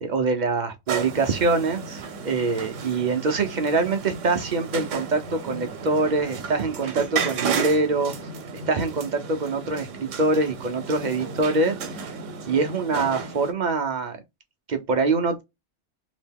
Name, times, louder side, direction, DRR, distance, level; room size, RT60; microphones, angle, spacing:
voice 1, 0.0-8.3 8.7-12.1 12.5-14.2 14.7-15.4, right 3 dB, 50° right, 0.6 m, -24 dB
sound 1, 0.9-13.5, right 5 dB, 85° right, 1.1 m, -33 dB
2.9 x 2.7 x 3.5 m
omnidirectional pair, 1.3 m